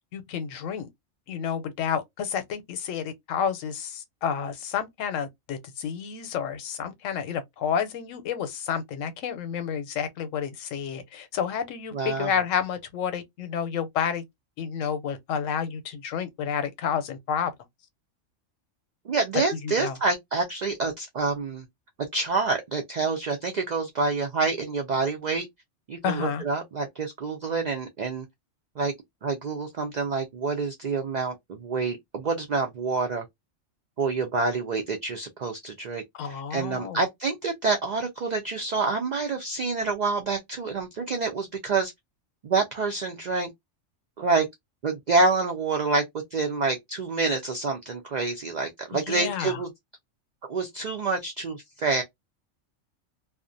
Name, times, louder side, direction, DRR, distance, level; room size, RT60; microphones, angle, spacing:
voice 1, 0.1-0.9 1.3-14.2 14.6-17.5 19.6-20.0 26.0-26.4 36.1-37.0 48.9-49.6, left 7 dB, 90° left, 1.0 m, -30 dB
voice 2, 11.9-12.3 19.1-21.7 22.1-25.5 25.9-28.3 28.8-28.9 29.2-33.2 34.0-41.9 42.4-43.5 44.2-44.5 44.8-46.0 46.3-49.7 50.5-52.0, right 4 dB, 85° right, 0.4 m, -27 dB
2.4 x 2.1 x 2.5 m
omnidirectional pair, 1.3 m